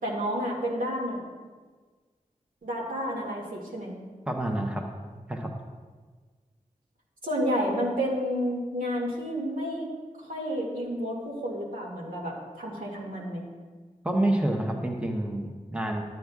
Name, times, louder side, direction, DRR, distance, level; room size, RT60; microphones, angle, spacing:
voice 1, 0.0-1.2 2.6-4.0 7.2-9.9 10.2-13.5, equal, 80° right, -3 dB, 2.0 m, -30 dB
voice 2, 4.3-4.8 5.3-5.5 14.0-16.0, right 1 dB, 10° right, 2 dB, 0.8 m, -28 dB
11.5 x 9.2 x 2.4 m, 1.4 s
wide cardioid pair, 105°, 14 cm